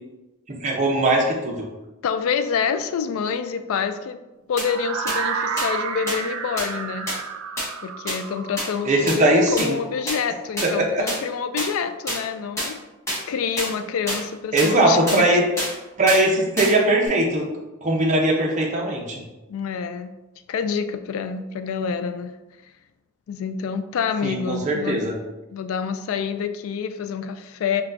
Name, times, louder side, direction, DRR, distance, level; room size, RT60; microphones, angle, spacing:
voice 1, 0.5-1.6 8.8-9.8 10.8-11.0 14.5-15.4 16.0-17.4 17.8-19.2 24.2-25.1, right 1 dB, 35° right, -2 dB, 0.6 m, -20 dB
voice 2, 2.0-4.2 4.5-7.1 7.8-12.8 13.3-15.3 19.5-20.1 20.5-22.3 23.3-25.0 25.5-27.8, left 6 dB, 75° left, 10 dB, 0.3 m, -27 dB
sound 1, 4.6-4.7 5.1-5.2 5.6-5.7 6.1-6.2 6.6-6.7 7.1-7.2 7.6-7.7 8.1-8.2 8.6-8.7 9.1-9.2 9.6-9.7 10.1-10.2 10.6-10.7 11.1-11.2 11.6-11.7 12.1-12.2 12.6-12.7 13.1-13.2 13.6-13.7 14.1-14.2 14.6-14.7 15.1-15.2 15.6-15.7 16.1-16.2 16.6-16.7 17.1-17.2, equal, 15° left, 1.0 m, -26 dB
sound 2, 4.6-10.6, right 6 dB, 75° right, 0.3 m, -31 dB
5.7 x 2.3 x 2.5 m, 1.0 s
head